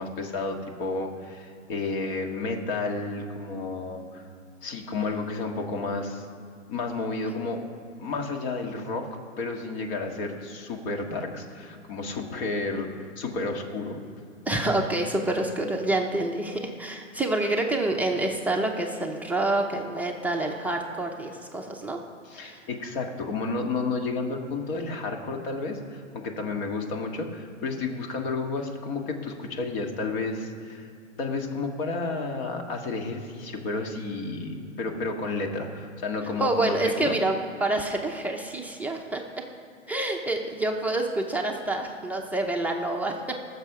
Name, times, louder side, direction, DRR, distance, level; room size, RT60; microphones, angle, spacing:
voice 1, 0.0-4.2 4.6-6.3 6.7-7.6 8.0-9.1 9.4-12.9 13.2-14.0 22.3-30.9 31.2-37.2, left 3 dB, 45° left, 3 dB, 1.9 m, -31 dB
voice 2, 14.5-22.0 22.3-22.6 36.4-39.2 39.9-43.4, right 2 dB, 5° right, 0 dB, 0.7 m, -27 dB
19.5 x 6.7 x 4.9 m, 2.4 s
hypercardioid pair, 125°, 39 cm